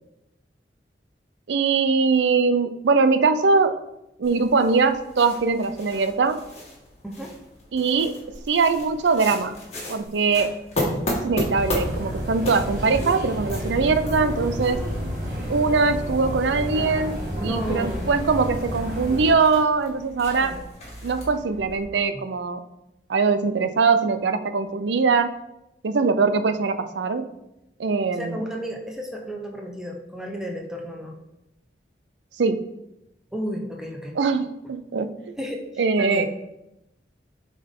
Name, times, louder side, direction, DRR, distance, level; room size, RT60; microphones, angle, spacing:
voice 1, 1.5-3.8 4.2-6.4 7.7-8.2 8.5-9.6 9.9-10.5 11.1-14.8 15.5-20.6 21.0-22.6 23.1-25.3 25.8-27.3 27.8-28.5 32.4-32.6 34.2-35.4 35.8-36.3, right 4 dB, 85° right, 10 dB, 0.5 m, -22 dB
sound 1, 4.2-21.9, left 1 dB, 40° left, 1.6 m, -35 dB
sound 2, 11.5-19.3, equal, 45° right, 2.6 m, -30 dB
voice 2, 17.4-18.0 20.4-20.6 22.1-22.2 28.1-31.2 33.3-34.2 35.4-36.3, equal, 5° right, 1 dB, 0.7 m, -32 dB
8.5 x 3.9 x 3.6 m, 0.89 s
head